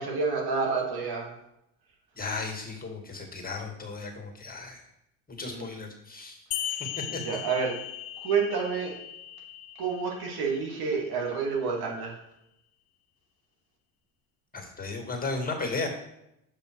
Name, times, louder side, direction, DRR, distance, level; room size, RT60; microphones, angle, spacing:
voice 1, 0.0-1.3 5.5-5.7 6.6-6.8 7.1-7.8 8.2-9.0 9.8-12.2, right 5 dB, 60° right, 0 dB, 2.3 m, -29 dB
voice 2, 2.2-4.8 5.3-6.4 7.1-7.2 14.5-15.9, left 3 dB, 20° left, 2 dB, 2.1 m, -35 dB
sound 1, 6.5-11.5, left 13 dB, 75° left, 0.6 m, -38 dB
7.2 x 5.2 x 4.8 m, 0.83 s
hypercardioid pair, 70°, 43 cm